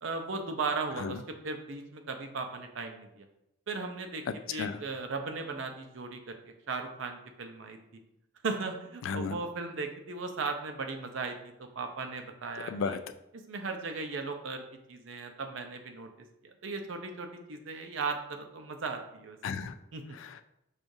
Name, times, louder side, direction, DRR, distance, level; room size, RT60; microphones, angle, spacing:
voice 1, 0.0-3.3 3.7-4.2 4.5-6.4 6.7-7.8 8.4-13.0 13.3-14.6 14.9-16.1 16.4-19.4 19.9-20.2, right 4 dB, 70° right, 5 dB, 0.6 m, -37 dB
voice 2, 9.0-9.4 12.7-13.0 19.4-19.7 20.2-20.4, left 5 dB, 75° left, 11 dB, 0.3 m, -34 dB
6.2 x 2.4 x 2.6 m, 0.85 s
head